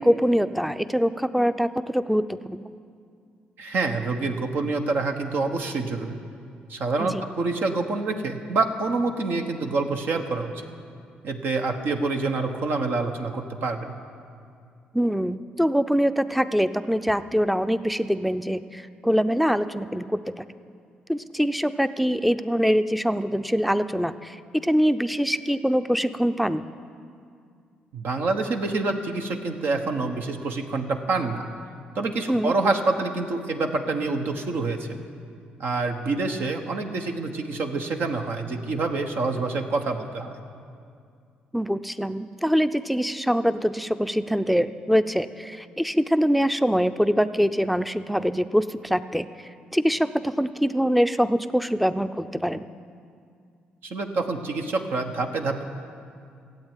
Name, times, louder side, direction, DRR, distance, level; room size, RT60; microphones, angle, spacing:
voice 1, 0.0-2.6 7.0-7.2 14.9-20.4 21.1-26.7 32.3-32.5 41.5-49.3 49.7-52.7, equal, ahead, 12 dB, 0.6 m, -24 dB
voice 2, 3.6-6.2 6.7-10.5 11.2-13.9 27.9-31.5 31.9-35.0 35.6-40.4 53.8-55.6, right 3 dB, 65° right, 4 dB, 1.3 m, -27 dB
14.5 x 8.0 x 9.1 m, 2.3 s
supercardioid pair, 60°, 4 cm